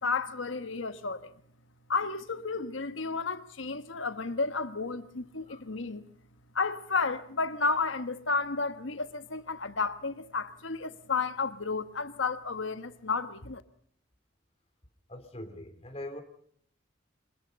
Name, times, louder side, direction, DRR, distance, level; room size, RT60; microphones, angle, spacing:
voice 1, 0.0-1.3 1.9-6.1 6.5-13.6, left 4 dB, 75° left, 1.4 m, -32 dB
voice 2, 15.1-16.2, left 1 dB, 30° left, 2.9 m, -42 dB
25.0 x 21.0 x 5.3 m
head